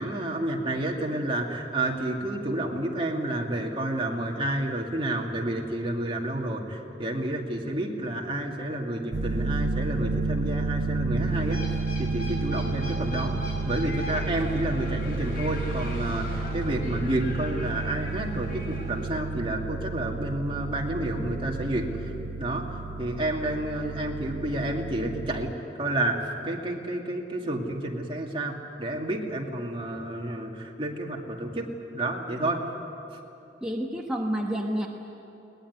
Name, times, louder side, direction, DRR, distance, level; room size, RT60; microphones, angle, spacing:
voice 1, 0.0-13.4 13.6-22.1 22.4-25.5 25.8-26.2 26.4-31.7 31.9-32.6 33.1-33.2, right 1 dB, 30° right, 0 dB, 2.4 m, -30 dB
sound 1, 9.1-25.5, right 3 dB, 85° right, 0.9 m, -31 dB
sound 2, 11.2-19.1, left 1 dB, 55° left, 5.1 m, -40 dB
voice 2, 33.6-34.9, equal, 5° right, -2 dB, 1.3 m, -29 dB
22.0 x 19.5 x 9.8 m, 2.9 s
head